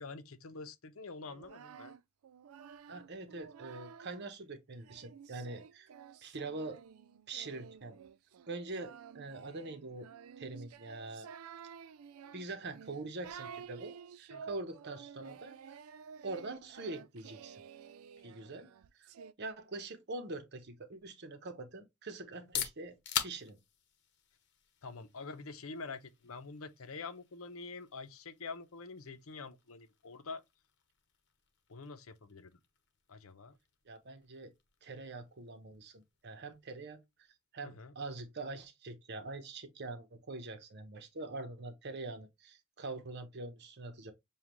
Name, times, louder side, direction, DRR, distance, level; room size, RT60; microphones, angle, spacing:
voice 1, 0.0-1.9 14.3-14.4 24.8-30.4 31.7-32.5 33.1-33.5 37.6-37.9, left 4 dB, 75° left, 0.7 m, -46 dB
Singing, 1.3-4.3 4.8-19.3, right 7 dB, 85° right, 0.4 m, -52 dB
voice 2, 2.9-5.9 6.2-6.8 7.3-8.0 8.5-10.1 10.4-11.3 12.3-15.8 16.2-17.6 18.2-18.7 19.0-19.1 19.4-23.0 23.2-23.6 33.9-34.5 34.8-37.3 37.5-44.1, right 3 dB, 55° right, 1.0 m, -44 dB
sound 1, 22.3-37.9, left 9 dB, 55° left, 0.9 m, -46 dB
7.1 x 2.4 x 3.0 m
head